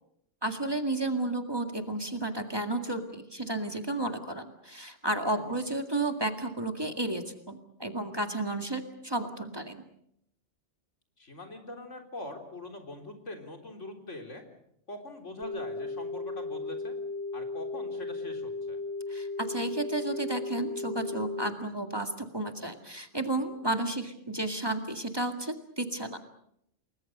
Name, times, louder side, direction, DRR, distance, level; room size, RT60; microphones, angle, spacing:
voice 1, 0.4-9.8 19.1-26.2, right 2 dB, 20° right, 6 dB, 2.1 m, -32 dB
voice 2, 11.2-14.4 14.9-17.0 17.3-18.8, left 2 dB, 90° left, 4 dB, 4.2 m, -43 dB
sound 1, 15.4-21.5, left 3 dB, 55° left, 2.1 m, -36 dB
29.0 x 21.0 x 6.7 m, 0.74 s
omnidirectional pair, 1.2 m